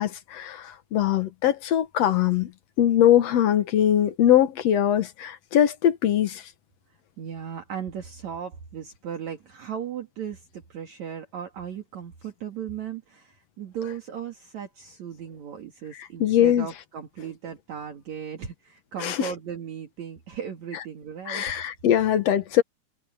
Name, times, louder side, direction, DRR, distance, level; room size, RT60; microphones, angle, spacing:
voice 1, 0.0-2.5 2.8-6.4 16.2-16.7 19.0-19.3 21.3-22.6, left 11 dB, 60° left, 1.9 m, -21 dB
voice 2, 7.2-21.6, right 8 dB, 55° right, 3.2 m, -36 dB
omnidirectional pair, 3.9 m